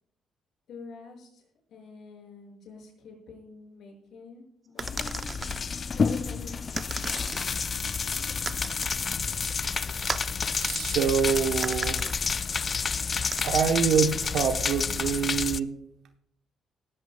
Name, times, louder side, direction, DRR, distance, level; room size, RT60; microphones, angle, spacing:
voice 1, 0.7-1.4 1.7-5.3 5.9-6.6, left 4 dB, 70° left, 1 dB, 6.4 m, -45 dB
sound 1, 4.8-15.6, left 5 dB, 35° left, 0.4 m, -29 dB
sound 2, 4.8-5.6 6.8-7.6 8.5-9.0 10.1-10.4 11.6-12.1 13.3-13.4, right 4 dB, 35° right, 0.7 m, -35 dB
voice 2, 10.5-12.0 13.4-15.7, right 7 dB, 75° right, 5 dB, 1.0 m, -26 dB
19.0 x 15.5 x 2.3 m, 0.74 s
cardioid pair, 115°, 0 cm